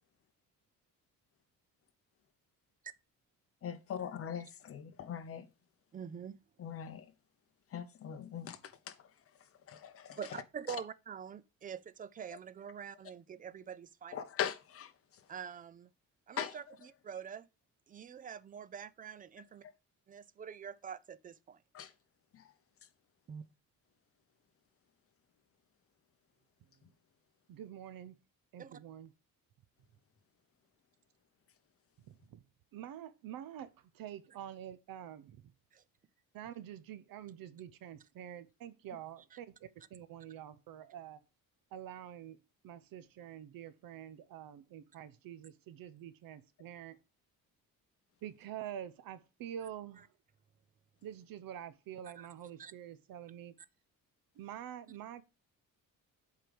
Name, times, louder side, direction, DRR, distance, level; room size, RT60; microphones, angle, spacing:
voice 1, 3.6-5.5 6.6-7.0 7.7-8.6 8.9-9.0 9.7-10.4 10.7-10.8 14.1-14.9 16.4-16.6 21.7-21.9, left 9 dB, 40° left, 0.9 m, -40 dB
voice 2, 5.9-6.4 10.2-14.3 15.3-15.9 16.3-17.4 17.9-19.6 20.1-21.6 23.3-23.4 28.6-28.8 35.7-35.8 52.2-52.3 52.6-52.7, right 7 dB, 25° right, 0.4 m, -45 dB
voice 3, 27.5-28.2 28.5-29.1 32.1-32.4 32.7-35.4 36.3-41.2 41.7-42.4 42.6-47.0 48.2-50.1 51.0-53.5 54.4-55.2, right 10 dB, 75° right, 0.8 m, -47 dB
7.7 x 4.8 x 5.2 m
cardioid pair, 180°, 35 cm